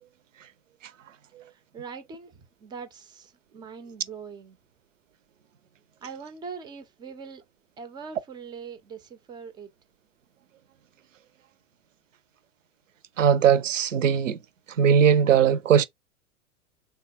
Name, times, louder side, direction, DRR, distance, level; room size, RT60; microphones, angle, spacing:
voice 1, 1.4-4.6 6.0-7.4 7.8-9.7, right 5 dB, 10° right, 0.3 m, -42 dB
voice 2, 13.2-14.4 14.8-15.8, right 8 dB, 80° right, 0.5 m, -19 dB
3.3 x 2.2 x 2.7 m
figure-of-eight pair, 90°, 38 cm